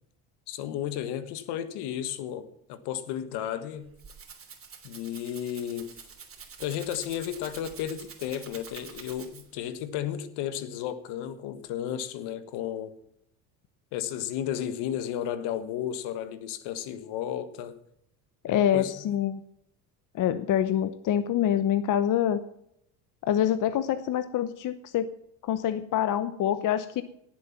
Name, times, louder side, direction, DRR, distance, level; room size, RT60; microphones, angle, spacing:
voice 1, 0.5-3.9 4.8-5.9 6.6-12.9 13.9-17.7 18.5-19.1, left 10 dB, 70° left, 12 dB, 1.5 m, -33 dB
Rattle (instrument), 3.7-9.7, right 6 dB, 30° right, 3.1 m, -47 dB
voice 2, 18.4-19.4 20.1-22.4 23.2-25.1 25.4-27.0, left 10 dB, 50° left, 12 dB, 0.9 m, -26 dB
18.0 x 8.0 x 5.9 m, 0.75 s
supercardioid pair, 85°, 42 cm